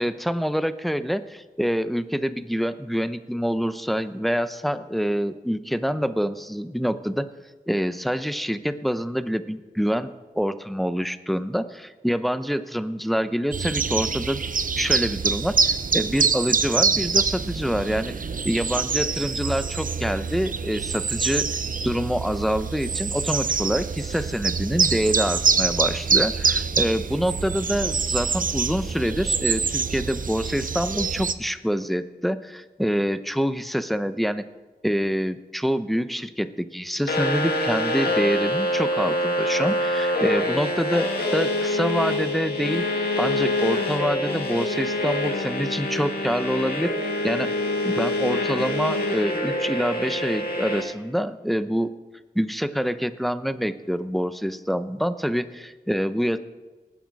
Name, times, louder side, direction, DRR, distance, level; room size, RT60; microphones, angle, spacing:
voice 1, 0.0-7.3 7.7-14.4 14.8-18.1 18.4-21.5 21.8-34.4 34.8-42.8 43.2-47.5 47.8-52.0 52.3-56.4, equal, ahead, 12 dB, 0.7 m, -26 dB
sound 1, 13.5-31.3, right 5 dB, 60° right, 0.6 m, -25 dB
sound 2, 37.1-50.8, left 1 dB, 90° left, 1.9 m, -25 dB
19.0 x 8.2 x 4.7 m, 1.2 s
cardioid pair, 45°, 16 cm